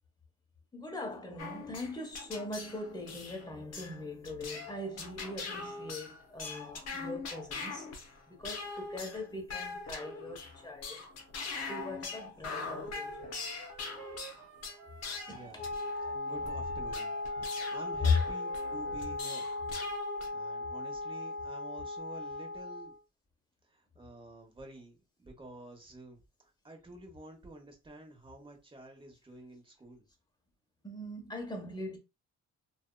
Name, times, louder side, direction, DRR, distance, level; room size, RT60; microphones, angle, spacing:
voice 1, 0.7-7.9 8.3-11.1 11.7-13.3 15.3-15.6 16.0-16.1 30.8-32.0, left 1 dB, 15° left, 1.0 m, -42 dB
sound 1, 1.4-20.3, left 4 dB, 60° left, 0.9 m, -42 dB
sound 2, 13.1-19.6, right 9 dB, 85° right, 0.5 m, -53 dB
voice 2, 15.3-15.7 16.3-17.2 17.5-19.5 20.3-22.9 23.7-30.0, right 1 dB, 15° right, 0.9 m, -50 dB
Wind instrument woodwind instrument, 15.6-23.0, left 2 dB, 40° left, 0.4 m, -37 dB
2.7 x 2.4 x 2.2 m
cardioid pair, 90°, 30 cm